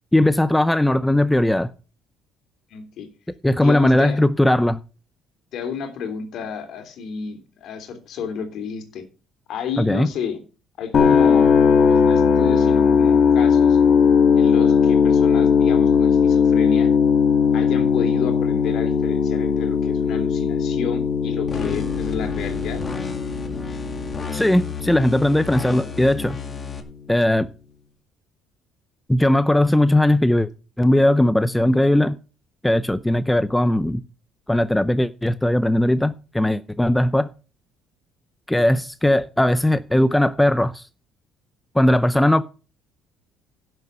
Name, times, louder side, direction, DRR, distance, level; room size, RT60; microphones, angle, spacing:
voice 1, 0.1-1.7 3.4-4.8 9.8-10.1 24.3-26.4 27.1-27.5 29.1-30.5 30.8-32.2 32.6-34.0 34.5-37.3 38.5-40.8 41.7-42.4, left 1 dB, 5° left, 0.5 m, -18 dB
voice 2, 2.7-3.1 3.6-4.2 5.5-9.0 9.5-10.4 10.8-11.5 11.9-13.8 14.3-16.9 17.5-22.8, left 6 dB, 60° left, 3.2 m, -31 dB
sound 1, 10.9-26.9, left 6 dB, 45° left, 1.8 m, -19 dB
sound 2, 21.5-26.8, left 3 dB, 25° left, 2.2 m, -33 dB
11.5 x 7.7 x 5.6 m
cardioid pair, 130°, 0 cm